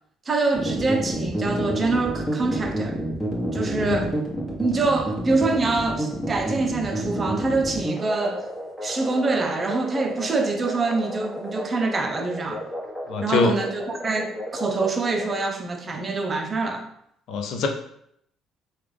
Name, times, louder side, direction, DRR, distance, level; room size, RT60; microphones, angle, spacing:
voice 1, 0.3-3.0 3.5-4.2 4.6-8.4 8.8-12.7 13.2-16.9, right 3 dB, 35° right, 0.6 m, -25 dB
sound 1, 0.5-15.3, equal, 15° left, 1.2 m, -30 dB
voice 2, 13.1-13.5 17.3-17.7, left 4 dB, 70° left, 0.5 m, -23 dB
3.5 x 2.3 x 3.3 m
supercardioid pair, 65°, 0 cm